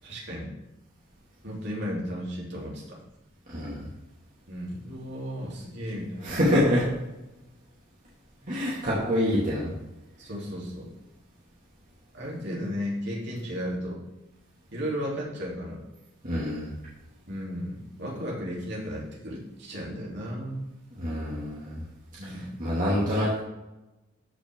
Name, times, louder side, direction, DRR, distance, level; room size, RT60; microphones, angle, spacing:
voice 1, 0.0-0.5 1.4-3.0 4.5-6.3 10.2-10.9 12.1-14.0 14.7-15.8 17.3-20.7 22.2-22.5, equal, 55° right, -4 dB, 3.3 m, -34 dB
voice 2, 3.5-3.8 6.2-6.8 8.5-9.7 16.2-16.7 21.0-21.8 22.6-23.4, equal, 40° right, -7 dB, 2.3 m, -25 dB
13.5 x 6.0 x 3.7 m, 0.99 s
head